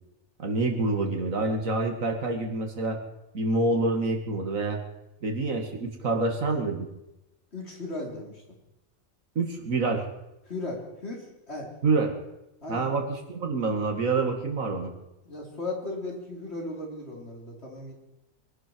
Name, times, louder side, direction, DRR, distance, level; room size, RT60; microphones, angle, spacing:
voice 1, 0.4-3.0 3.3-4.8 5.2-6.9 9.4-10.1 11.8-12.1 12.7-14.9, right 3 dB, 80° right, 3 dB, 2.5 m, -27 dB
voice 2, 7.5-8.4 10.5-11.7 12.6-12.9 15.2-17.9, left 2 dB, 50° left, -1 dB, 3.9 m, -36 dB
24.0 x 12.0 x 4.6 m, 0.93 s
omnidirectional pair, 1.4 m